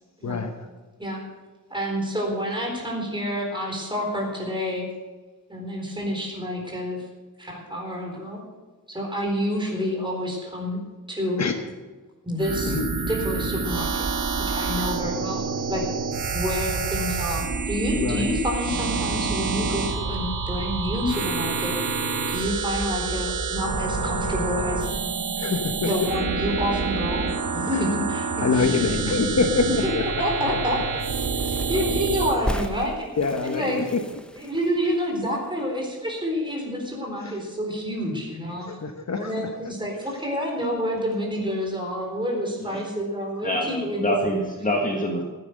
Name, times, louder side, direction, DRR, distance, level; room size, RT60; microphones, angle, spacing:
voice 1, 0.2-0.7 11.4-11.5 12.7-12.9 18.0-18.3 25.4-26.1 27.7-27.8 28.3-29.7 29.9-30.1 30.5-30.7 31.7-32.0 33.2-34.0 37.2-37.4 38.6-39.5, left 4 dB, 50° left, 6 dB, 1.0 m, -26 dB
voice 2, 1.7-4.9 5.5-7.0 7.4-8.4 8.9-10.8 11.1-11.4 12.2-12.7 13.1-14.1 14.5-15.4 15.7-15.8 16.3-22.0 22.3-24.9 25.8-28.4 29.1-29.3 29.6-29.9 30.2-30.8 31.3-33.1 33.4-33.8 34.3-38.7 39.1-44.2, equal, 15° right, -1 dB, 4.1 m, -28 dB
sound 1, 12.4-32.4, right 4 dB, 60° right, 1.6 m, -27 dB
sound 2, 30.9-36.5 36.8-36.9 37.0-38.0 38.3-38.5, equal, 5° left, 0.7 m, -37 dB
voice 3, 43.4-45.2, equal, 25° left, 0 dB, 1.6 m, -25 dB
15.0 x 9.7 x 6.6 m, 1.3 s
wide cardioid pair, 170°, 34 cm